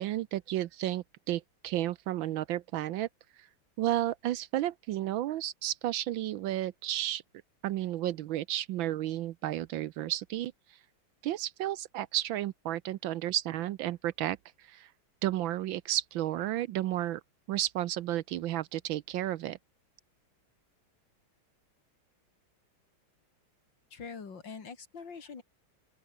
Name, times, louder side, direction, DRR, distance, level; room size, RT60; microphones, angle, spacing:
voice 1, 0.0-3.1 3.4-3.5 3.8-7.2 7.6-10.5 11.2-14.9 15.2-17.2 17.5-19.6, right 13 dB, 70° right, 1.3 m, -32 dB
voice 2, 23.9-25.4, left 5 dB, 60° left, 3.4 m, -44 dB
open air
omnidirectional pair, 2.3 m